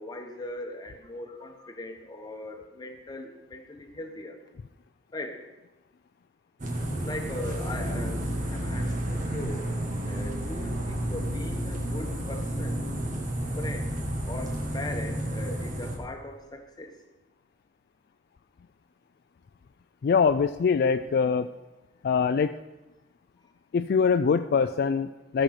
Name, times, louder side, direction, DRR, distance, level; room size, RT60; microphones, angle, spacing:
voice 1, 0.0-4.3 5.1-5.4 7.0-9.7 10.1-12.8 13.6-13.9 14.3-16.9, left 1 dB, 20° left, 4 dB, 1.2 m, -39 dB
sound 1, 6.6-16.0, equal, 45° right, 1.8 m, -31 dB
voice 2, 20.0-21.5 22.0-22.5 23.7-25.4, left 5 dB, 55° left, 9 dB, 0.3 m, -23 dB
13.0 x 6.4 x 5.9 m, 1.0 s
head